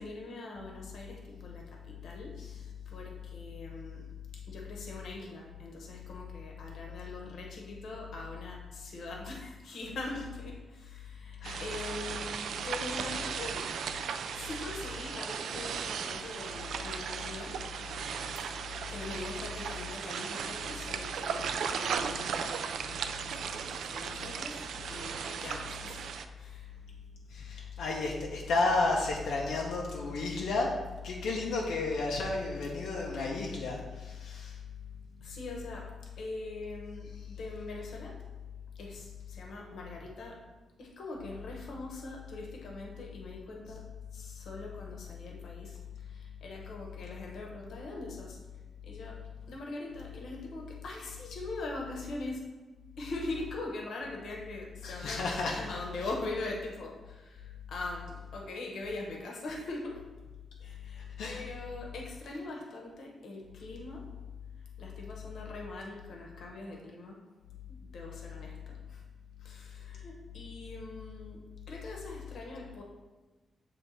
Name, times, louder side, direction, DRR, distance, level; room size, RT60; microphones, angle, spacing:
voice 1, 0.0-4.1 4.5-13.7 14.3-17.6 18.4-22.7 23.2-26.8 27.4-27.5 35.2-35.9 36.2-38.2 38.7-40.4 40.8-43.8 44.1-48.4 48.8-49.2 49.5-52.4 53.0-60.0 60.6-64.0 64.8-67.2 67.7-69.0 69.4-71.4 71.7-72.8, left 2 dB, 60° left, 0 dB, 1.0 m, -42 dB
sound 1, 11.4-26.3, right 6 dB, 70° right, 0.3 m, -36 dB
voice 2, 27.3-34.6 54.8-55.6 61.2-61.4, left 3 dB, 90° left, -1 dB, 0.7 m, -32 dB
7.5 x 3.3 x 4.0 m, 1.3 s
wide cardioid pair, 180°, 0 cm